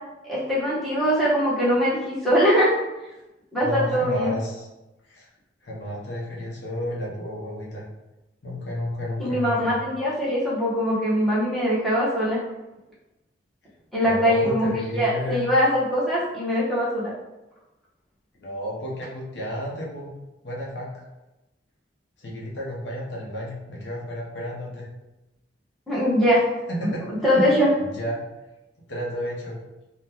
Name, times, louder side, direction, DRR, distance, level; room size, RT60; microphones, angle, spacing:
voice 1, 0.2-2.7 3.5-4.3 9.2-12.4 13.9-17.1 25.9-26.4 26.8-27.7, equal, ahead, -9 dB, 1.1 m, -22 dB
voice 2, 3.6-4.7 5.1-5.3 5.6-7.8 8.4-9.7 14.0-15.5 18.4-20.1 20.4-20.9 22.2-24.9 26.7-27.1 27.4-28.2 28.9-29.6, equal, 90° left, -4 dB, 0.8 m, -32 dB
3.7 x 2.2 x 2.8 m, 0.99 s
head